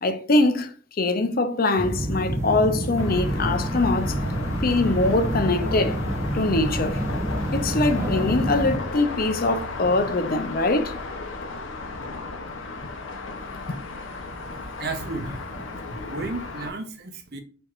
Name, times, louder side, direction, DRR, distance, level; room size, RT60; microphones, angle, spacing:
voice 1, 0.0-4.2 4.6-6.0 6.3-7.0 7.5-10.9, left 2 dB, 45° left, 0.6 m, -23 dB
sound 1, 1.8-8.8, right 1 dB, 15° right, 0.7 m, -27 dB
Traffic over Bridge Castle Frank, 3.0-16.7, left 3 dB, 85° left, 0.9 m, -35 dB
voice 2, 14.4-15.6 15.9-17.4, right 2 dB, 55° right, 0.8 m, -34 dB
4.4 x 4.4 x 2.4 m
head